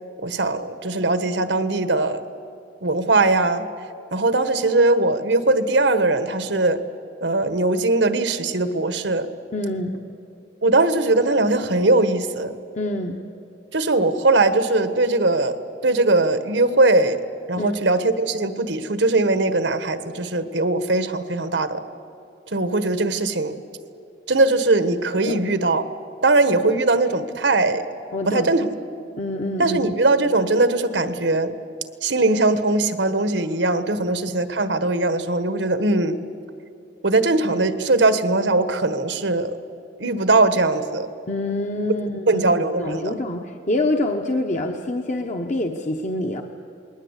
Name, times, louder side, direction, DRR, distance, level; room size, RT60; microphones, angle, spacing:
voice 1, 0.2-2.2 2.8-3.7 4.1-6.8 7.2-9.3 10.6-12.6 13.7-17.2 17.5-21.8 22.5-23.6 24.3-25.8 26.2-27.8 28.3-28.7 29.6-31.5 32.0-36.2 37.0-39.6 40.0-41.1 42.3-43.2, right 2 dB, 80° right, 11 dB, 1.4 m, -20 dB
voice 2, 9.5-10.0 12.7-13.2 17.5-17.7 25.2-25.4 28.1-28.5 29.2-29.8 41.3-42.5 42.8-46.4, left 1 dB, 45° left, 3 dB, 1.1 m, -26 dB
28.5 x 20.5 x 8.2 m, 2.7 s
head